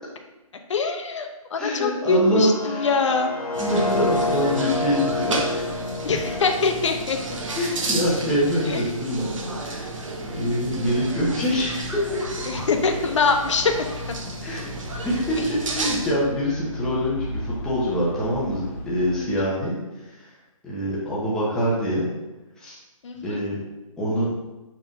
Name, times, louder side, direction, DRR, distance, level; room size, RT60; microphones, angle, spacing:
voice 1, 0.7-3.3 6.0-7.2 8.7-8.9 12.5-13.7 15.4-15.5 19.2-19.3 23.0-23.3, left 4 dB, 55° left, 5 dB, 0.9 m, -23 dB
voice 2, 1.6-2.9 3.6-5.6 7.5-9.3 9.6-9.9 10.3-12.3 14.4-14.6 15.0-15.4 15.7-19.8 20.1-20.3 20.6-22.1 22.6-22.8 23.2-23.6 24.0-24.3, equal, 5° left, -8 dB, 1.0 m, -24 dB
sound 1, 2.2-8.1, left 2 dB, 85° left, 1.0 m, -29 dB
sound 2, 3.5-16.1, right 2 dB, 60° right, 1.3 m, -32 dB
sound 3, 10.6-19.2, left 2 dB, 25° left, 0.6 m, -37 dB
6.0 x 3.7 x 5.2 m, 1.0 s
hypercardioid pair, 160°, 18 cm